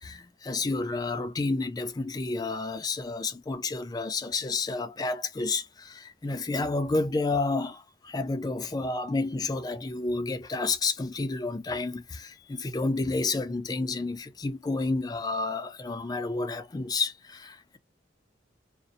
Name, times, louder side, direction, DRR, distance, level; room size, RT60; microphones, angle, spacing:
voice 1, 0.0-17.8, left 3 dB, 20° left, 0.4 m, -30 dB
2.6 x 2.0 x 2.3 m
head